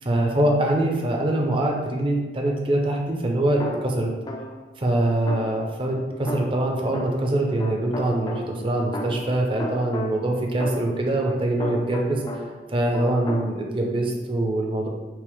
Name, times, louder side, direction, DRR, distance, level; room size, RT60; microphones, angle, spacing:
voice 1, 0.0-4.1 4.8-12.2 12.7-14.9, right 1 dB, 30° right, 0 dB, 0.5 m, -24 dB
sound 1, 3.6-4.7 5.3-12.7 12.9-13.5, left 1 dB, 25° left, 0.3 m, -34 dB
5.8 x 2.1 x 3.4 m, 1.2 s
head